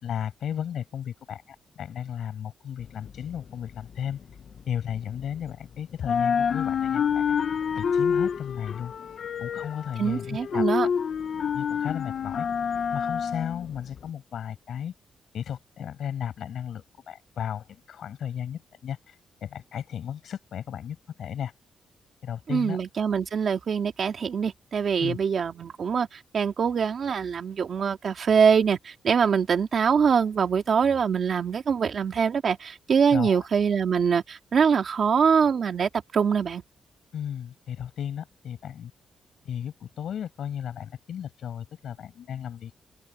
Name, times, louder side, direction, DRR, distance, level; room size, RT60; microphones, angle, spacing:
voice 1, 0.0-4.2 4.7-7.4 7.7-8.9 9.4-10.7 11.5-12.5 12.9-14.9 15.3-21.5 22.2-22.8 25.0-25.2 33.1-33.5 37.1-38.9 39.4-42.8, left 9 dB, 60° left, 5.9 m, -34 dB
sound 1, 2.8-5.7 5.9-14.1, left 7 dB, 45° left, 0.9 m, -28 dB
voice 2, 10.0-10.9 22.5-36.6, right 6 dB, 45° right, 2.2 m, -24 dB
open air
wide cardioid pair, 170°, 0 cm